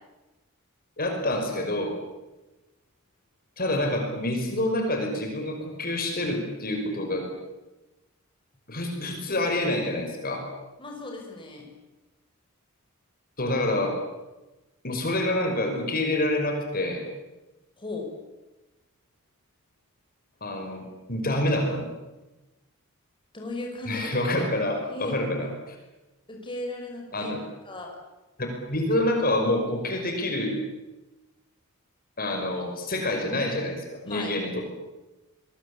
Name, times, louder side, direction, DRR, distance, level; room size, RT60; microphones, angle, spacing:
voice 1, 1.0-1.9 3.6-7.3 8.7-10.5 13.4-14.0 14.8-17.0 20.4-20.8 21.1-21.9 23.9-25.8 27.1-27.4 28.7-30.5 32.2-34.6, left 1 dB, 40° left, 3 dB, 5.5 m, -27 dB
voice 2, 10.8-11.7 17.8-18.1 23.3-24.1 24.4-24.5 24.9-25.2 26.3-27.3 27.7-28.0 34.1-34.3, left 2 dB, 20° left, 0 dB, 5.6 m, -36 dB
27.0 x 21.5 x 8.6 m, 1.1 s
head